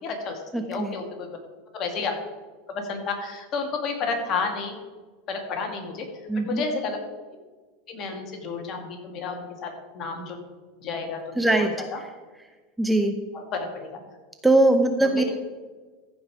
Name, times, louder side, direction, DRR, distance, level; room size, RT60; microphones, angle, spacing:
voice 1, 0.0-0.4 0.7-1.4 1.7-2.1 2.7-4.8 5.3-6.1 6.4-7.0 7.9-10.4 10.8-12.0 13.3-14.0 15.0-15.4, left 4 dB, 40° left, 3 dB, 2.3 m, -31 dB
voice 2, 0.5-1.0 6.3-6.6 11.4-11.7 12.8-13.2 14.4-15.2, right 2 dB, 5° right, 6 dB, 0.8 m, -21 dB
14.5 x 5.5 x 4.9 m, 1.3 s
hypercardioid pair, 105°, 0 cm